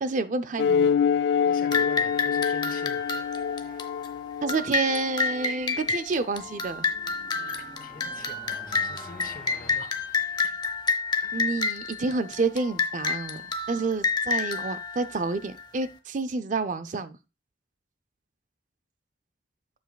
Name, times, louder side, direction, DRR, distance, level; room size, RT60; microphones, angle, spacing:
voice 1, 0.0-0.9 4.4-6.8 11.3-13.4 13.7-17.2, right 3 dB, 45° right, 0.5 m, -29 dB
sound 1, 0.6-5.5, left 7 dB, 70° left, 0.3 m, -26 dB
voice 2, 1.4-3.1 7.4-10.0 11.2-11.5, left 3 dB, 50° left, 0.9 m, -45 dB
sound 2, 1.7-15.8, left 4 dB, 25° left, 0.8 m, -30 dB
sound 3, 6.1-11.0, left 1 dB, ahead, 3.0 m, -49 dB
9.0 x 7.2 x 2.3 m
head